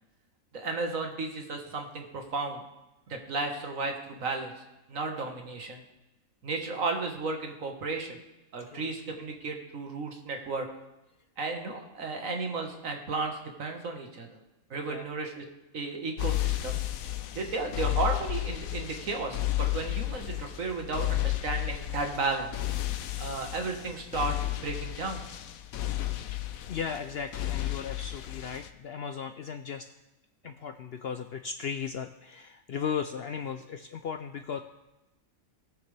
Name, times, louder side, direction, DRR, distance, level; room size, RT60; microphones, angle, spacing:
voice 1, 0.5-2.6 3.1-4.6 4.9-5.8 6.4-8.2 8.5-10.7 11.4-14.3 14.7-15.5 15.7-16.8 17.3-22.5 23.2-25.2, right 3 dB, 70° right, 3 dB, 1.8 m, -34 dB
sound 1, 16.2-28.7, left 15 dB, 80° left, 1.1 m, -33 dB
voice 2, 26.7-29.9 30.4-34.6, left 7 dB, 65° left, 7 dB, 0.6 m, -36 dB
19.0 x 6.6 x 3.3 m, 0.98 s
omnidirectional pair, 1.5 m